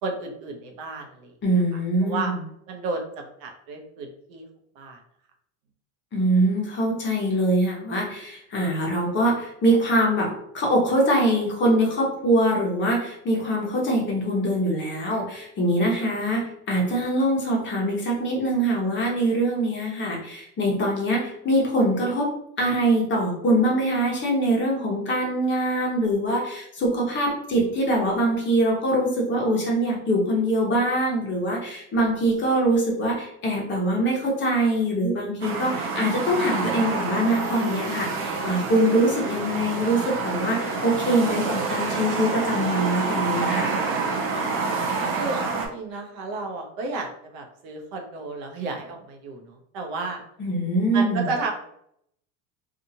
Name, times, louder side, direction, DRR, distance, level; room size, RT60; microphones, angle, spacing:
voice 1, 0.0-1.3 2.0-2.3 2.7-4.5 4.8-5.0 45.2-50.2 50.9-51.5, right 3 dB, 65° right, 3 dB, 0.8 m, -32 dB
voice 2, 1.4-2.4 6.1-10.3 10.5-22.3 22.6-43.7 50.4-51.3, right 1 dB, 25° left, -2 dB, 0.8 m, -23 dB
sound 1, 35.4-45.7, right 4 dB, 30° right, 0.5 m, -27 dB
2.7 x 2.4 x 2.7 m, 0.73 s
supercardioid pair, 135°, 43 cm